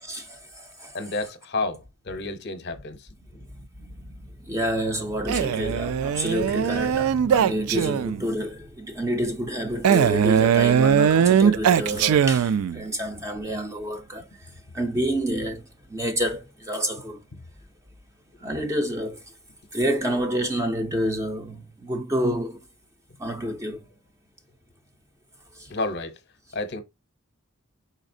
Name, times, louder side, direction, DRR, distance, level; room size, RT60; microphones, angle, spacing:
voice 1, 0.0-1.0 3.5-17.2 18.4-19.3 19.7-22.6 23.2-23.9 25.5-25.7, equal, 15° right, 0.5 m, -29 dB
voice 2, 0.9-3.0 25.7-26.2 26.5-26.8, left 3 dB, 50° left, 0.7 m, -30 dB
Male speech man speaking, 5.3-8.3 9.8-12.8, right 8 dB, 85° right, 0.3 m, -20 dB
4.9 x 4.0 x 2.6 m
head